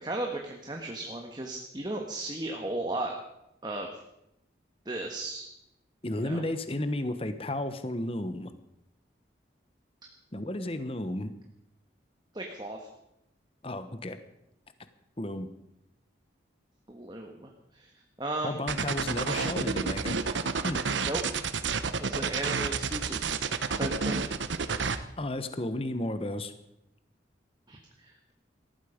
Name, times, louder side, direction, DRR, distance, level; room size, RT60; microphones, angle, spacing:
voice 1, 0.0-3.1 3.6-3.9 4.8-5.4 6.2-6.4 12.3-12.9 16.9-17.9 18.2-18.6 21.1-21.2 22.0-23.4 23.7-24.2 27.7-28.3, right 2 dB, 25° right, 2 dB, 1.5 m, -35 dB
voice 2, 6.0-8.5 10.3-11.3 13.6-14.2 15.2-15.5 18.4-20.2 20.6-20.8 25.2-26.5, left 1 dB, 30° left, 11 dB, 1.1 m, -33 dB
sound 1, 18.7-25.0, right 5 dB, 80° right, 1.0 m, -30 dB
18.5 x 14.5 x 5.2 m, 0.83 s
head